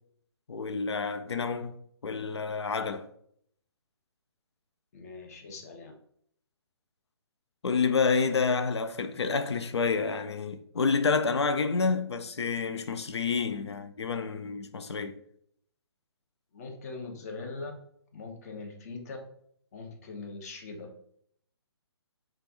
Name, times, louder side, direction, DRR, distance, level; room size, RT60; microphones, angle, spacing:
voice 1, 0.5-1.7 2.0-3.1 7.6-15.2, left 5 dB, 70° left, 0.4 m, -29 dB
voice 2, 4.9-5.9 16.5-17.7 18.1-19.2 19.7-20.9, left 3 dB, 35° left, 0.7 m, -41 dB
3.2 x 2.4 x 4.1 m
figure-of-eight pair, 135°, 14 cm